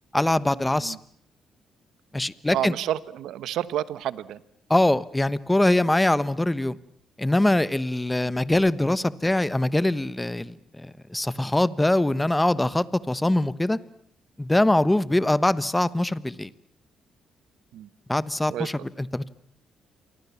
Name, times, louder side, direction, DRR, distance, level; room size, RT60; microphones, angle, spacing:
voice 1, 0.1-1.0 2.1-2.7 4.7-6.8 7.2-13.8 14.4-16.5 18.1-19.3, left 1 dB, 10° left, 17 dB, 1.2 m, -23 dB
voice 2, 2.5-4.4 17.7-17.9 18.5-18.7, right 12 dB, 80° right, 16 dB, 1.3 m, -30 dB
28.5 x 24.5 x 7.3 m, 0.67 s
cardioid pair, 90°, 0 cm